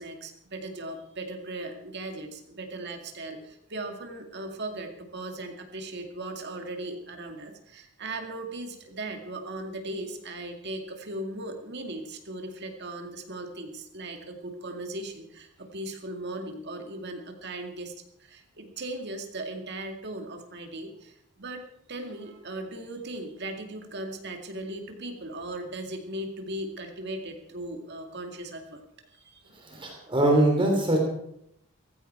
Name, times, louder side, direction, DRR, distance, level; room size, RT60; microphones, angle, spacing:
voice 1, 0.0-17.9 18.2-21.6 21.9-28.8 29.1-29.4, right 1 dB, 50° right, 4 dB, 2.2 m, -38 dB
voice 2, 29.6-31.0, right 1 dB, 20° right, 1 dB, 3.0 m, -22 dB
16.0 x 15.0 x 4.5 m, 0.75 s
head